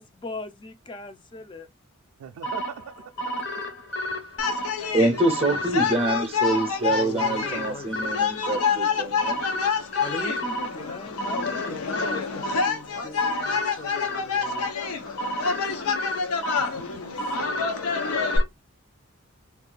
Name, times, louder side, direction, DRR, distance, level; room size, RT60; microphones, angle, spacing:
voice 1, 0.0-1.7 6.9-8.3 10.0-14.7 16.5-17.1, left 2 dB, 20° left, 0.4 m, -40 dB
voice 2, 2.2-3.1 3.4-3.7 16.6-18.0, right 8 dB, 90° right, 0.3 m, -43 dB
sound 1, 2.4-18.4, equal, 50° left, 0.8 m, -32 dB
sound 2, 4.4-18.4, left 6 dB, 85° left, 0.7 m, -28 dB
voice 3, 4.9-9.4, right 2 dB, 25° right, 0.6 m, -25 dB
voice 4, 12.9-14.4 14.7-17.2, left 2 dB, 70° left, 1.1 m, -43 dB
2.7 x 2.4 x 3.8 m
head